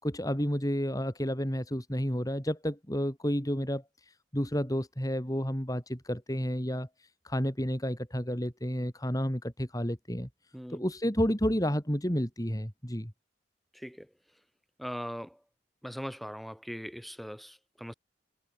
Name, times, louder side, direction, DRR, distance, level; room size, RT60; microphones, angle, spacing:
voice 1, 0.0-3.8 4.3-6.9 7.2-10.3 10.7-13.1, equal, 20° left, 4.6 m, -30 dB
voice 2, 10.5-10.8 13.7-14.1 14.8-15.4 15.8-17.9, equal, ahead, 6.0 m, -40 dB
head